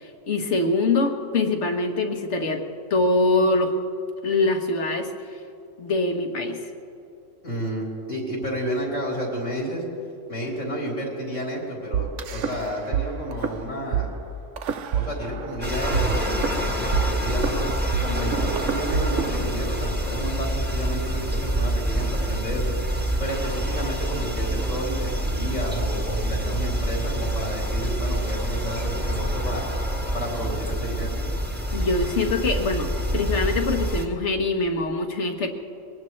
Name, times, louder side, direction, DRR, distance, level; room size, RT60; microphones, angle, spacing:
voice 1, 0.0-2.6 2.9-3.7 4.2-5.1 5.8-6.7 31.7-35.5, left 2 dB, 70° left, 4 dB, 1.6 m, -24 dB
voice 2, 7.4-9.8 10.3-14.1 14.9-17.7 18.0-29.6 30.1-31.1, equal, 90° left, -3 dB, 4.1 m, -31 dB
sound 1, 11.9-13.0 13.3-13.5 13.9-14.0 14.6-15.6 15.9-19.9, right 9 dB, 80° right, 1.1 m, -27 dB
sound 2, 15.6-34.1, right 1 dB, 10° right, 1.4 m, -27 dB
23.0 x 18.5 x 3.2 m, 2.6 s
omnidirectional pair, 1.3 m